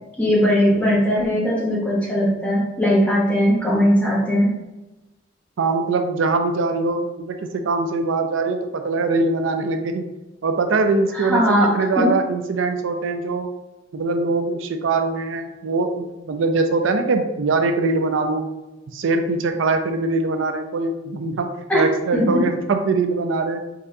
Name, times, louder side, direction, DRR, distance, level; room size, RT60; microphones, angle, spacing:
voice 1, 0.2-4.5 11.1-12.1 21.7-21.8 22.1-22.4, equal, 5° left, -5 dB, 1.1 m, -19 dB
voice 2, 5.6-10.0 10.4-11.4 11.7-13.5 13.9-18.4 18.9-21.5 21.7-23.6, right 3 dB, 75° right, 6 dB, 0.4 m, -22 dB
4.0 x 3.6 x 2.7 m, 1.1 s
head